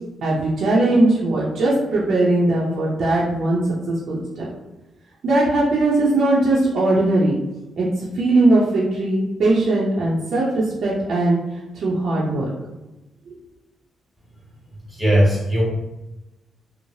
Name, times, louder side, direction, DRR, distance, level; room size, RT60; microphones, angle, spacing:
voice 1, 0.2-3.6 3.9-4.5 5.2-7.3 7.8-11.4 11.7-12.5, right 2 dB, 70° right, -6 dB, 0.6 m, -19 dB
voice 2, 14.9-15.6, equal, 10° left, -5 dB, 1.3 m, -17 dB
3.1 x 2.0 x 2.7 m, 1.0 s
supercardioid pair, 65°, 0 cm